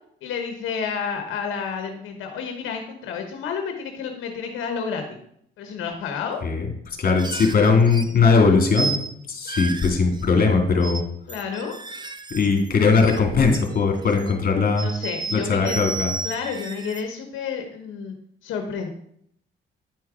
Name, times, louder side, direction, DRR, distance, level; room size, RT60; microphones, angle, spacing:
voice 1, 0.2-5.2 5.6-6.4 9.5-9.7 11.3-11.7 14.8-15.8 16.2-18.1 18.4-18.9, left 6 dB, 90° left, 5 dB, 1.0 m, -30 dB
voice 2, 6.4-8.9 9.3-11.0 12.3-14.9 15.3-16.1, left 4 dB, 45° left, 2 dB, 2.5 m, -19 dB
sound 1, 7.2-8.2 8.7-9.1 9.5-10.5 10.8-11.0 11.3-13.2 13.5-14.4 14.8-17.0, right 3 dB, 20° right, 0.7 m, -33 dB
9.7 x 4.7 x 4.8 m, 0.69 s
cardioid pair, 90°, 20 cm